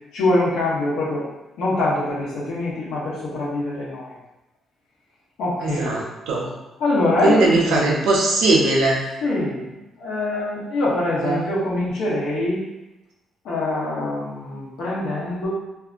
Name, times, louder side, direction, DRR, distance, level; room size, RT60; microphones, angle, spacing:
voice 1, 0.1-1.3 1.6-4.2 5.4-6.0 6.8-8.0 9.2-12.6 13.4-15.5, left 2 dB, 85° left, -6 dB, 0.9 m, -24 dB
voice 2, 5.6-6.5 7.2-9.0 11.2-11.5, right 2 dB, 85° right, -2 dB, 0.6 m, -19 dB
2.7 x 2.3 x 2.5 m, 0.97 s
cardioid pair, 90°, 0 cm